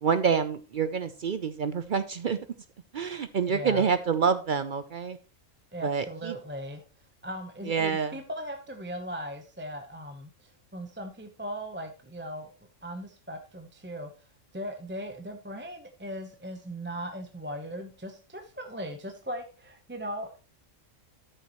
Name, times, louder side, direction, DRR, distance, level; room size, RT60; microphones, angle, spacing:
voice 1, 0.0-2.4 2.9-5.2 5.8-6.4 7.6-8.2, right 6 dB, 55° right, 11 dB, 0.6 m, -27 dB
voice 2, 3.5-3.8 5.7-6.8 7.2-12.5 12.8-14.1 14.5-20.4, equal, 10° right, 5 dB, 0.7 m, -38 dB
13.0 x 6.6 x 3.0 m, 0.33 s
omnidirectional pair, 1.3 m